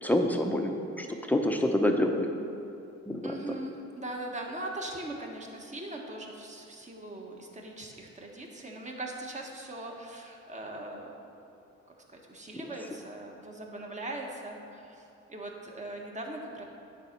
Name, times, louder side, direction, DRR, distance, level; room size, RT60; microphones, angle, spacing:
voice 1, 0.0-2.3 3.1-3.6 12.5-12.7, left 1 dB, 5° left, 3 dB, 0.8 m, -27 dB
voice 2, 3.2-11.1 12.1-16.6, right 1 dB, 25° right, 0 dB, 1.3 m, -40 dB
9.6 x 4.2 x 6.0 m, 2.7 s
cardioid pair, 90°, 30 cm